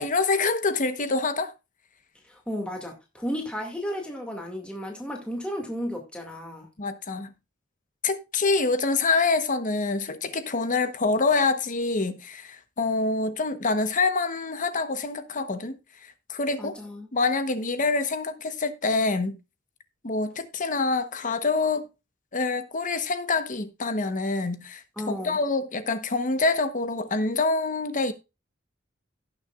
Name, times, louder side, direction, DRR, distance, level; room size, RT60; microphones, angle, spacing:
voice 1, 0.0-1.5 6.8-7.3 8.0-15.7 16.3-16.7 17.1-19.4 20.0-21.8 22.3-28.1, left 3 dB, 40° left, 1.1 m, -26 dB
voice 2, 2.2-6.7 16.6-17.1 25.0-25.4, equal, 5° left, 2.2 m, -33 dB
17.5 x 6.7 x 2.4 m
head